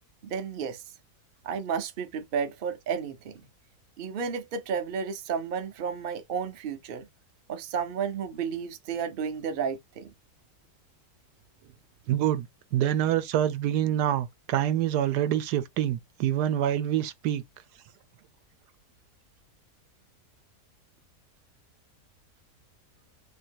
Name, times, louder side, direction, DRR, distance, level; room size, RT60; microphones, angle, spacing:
voice 1, 0.2-0.8 1.4-3.3 4.0-7.1 7.5-10.1, right 6 dB, 50° right, 0.7 m, -32 dB
voice 2, 12.1-17.4, right 11 dB, 80° right, 1.2 m, -26 dB
2.9 x 2.8 x 4.4 m
omnidirectional pair, 1.7 m